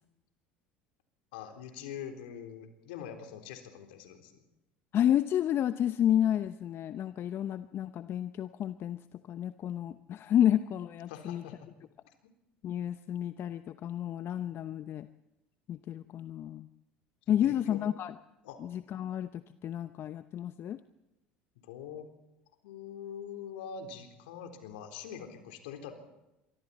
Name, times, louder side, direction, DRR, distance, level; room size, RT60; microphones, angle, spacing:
voice 1, 1.3-4.4 11.1-11.7 17.3-17.8 18.4-18.6 21.6-22.1 22.6-25.9, left 8 dB, 75° left, 5 dB, 3.8 m, -44 dB
voice 2, 4.9-9.0 9.3-11.4 12.6-15.1 15.7-16.7 17.3-18.1 18.7-19.3 19.6-20.8, left 10 dB, 45° left, 12 dB, 0.8 m, -30 dB
26.5 x 24.0 x 4.3 m, 0.95 s
hypercardioid pair, 70°, 6 cm